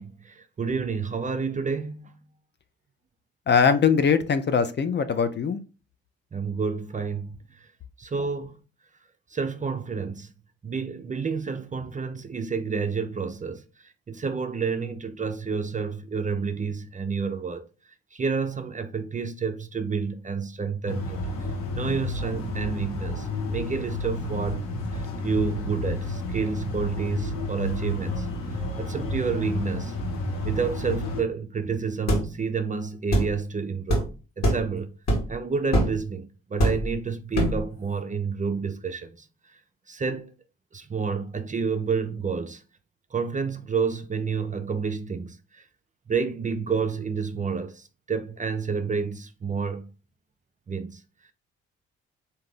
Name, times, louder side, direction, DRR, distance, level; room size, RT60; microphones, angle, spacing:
voice 1, 0.0-2.2 6.3-7.4 8.0-8.6 9.3-10.3 10.6-13.6 14.1-17.6 18.1-21.2 21.7-24.6 24.9-28.3 28.8-29.9 30.4-34.1 34.4-34.9 35.3-39.3 39.9-40.3 40.7-42.6 43.1-45.6 46.1-49.9 50.7-51.0, right 5 dB, 20° right, 0.5 m, -29 dB
voice 2, 3.5-5.6, left 6 dB, 30° left, 0.5 m, -21 dB
sound 1, 20.9-31.2, left 2 dB, 70° left, 1.1 m, -31 dB
sound 2, 32.1-32.3 33.1-33.3 33.9-34.1 34.4-34.7 35.1-35.3 35.7-36.0 36.6-36.9 37.3-37.6, right 1 dB, 50° left, 1.5 m, -22 dB
3.7 x 2.8 x 3.6 m
figure-of-eight pair, 40°, 34 cm